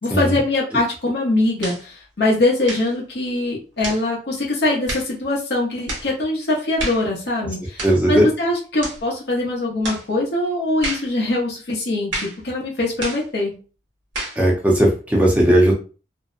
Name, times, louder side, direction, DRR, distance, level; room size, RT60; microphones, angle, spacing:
voice 1, 0.0-13.5, left 2 dB, 65° left, -4 dB, 0.7 m, -22 dB
sound 1, 1.6-1.9 2.6-2.9 3.8-4.1 4.9-5.1 5.9-6.1 6.8-7.1 7.8-8.0 8.8-9.0 9.8-10.1 10.8-11.1 12.1-12.4 13.0-13.3 14.1-14.4, right 2 dB, 85° right, 1.1 m, -29 dB
voice 2, 7.8-8.3 14.4-15.7, right 1 dB, 10° right, -2 dB, 0.6 m, -16 dB
2.6 x 2.0 x 2.4 m, 0.36 s
head